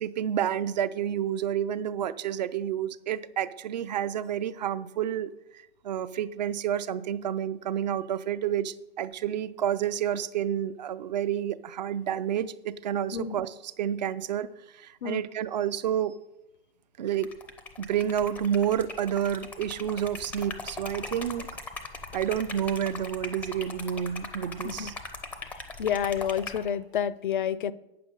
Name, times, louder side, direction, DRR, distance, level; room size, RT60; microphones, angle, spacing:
voice 1, 0.0-5.3 5.8-14.5 14.7-16.2 17.0-17.3 17.8-21.5 22.1-24.9, right 10 dB, 45° right, 15 dB, 0.5 m, -29 dB
Liquid, 17.1-26.7, left 4 dB, 5° left, 0.5 m, -40 dB
voice 2, 25.8-27.7, left 8 dB, 55° left, 18 dB, 0.5 m, -29 dB
9.0 x 6.7 x 5.3 m, 0.94 s
figure-of-eight pair, 115°, 31 cm